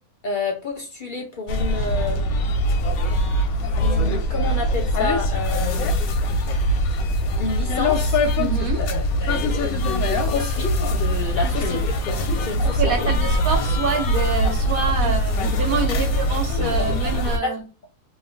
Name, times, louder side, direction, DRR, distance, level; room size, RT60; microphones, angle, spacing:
voice 1, 0.2-2.3 3.8-6.0 7.4-8.2 8.8-13.1 15.0-15.1 16.0-16.1 17.4-17.5, left 4 dB, 50° left, 0.6 m, -29 dB
sound 1, 1.5-17.4, equal, 85° left, 1.1 m, -22 dB
voice 2, 8.4-8.9 11.2-11.4 12.6-17.6, right 5 dB, 85° right, 1.2 m, -26 dB
3.0 x 2.2 x 2.4 m
omnidirectional pair, 1.5 m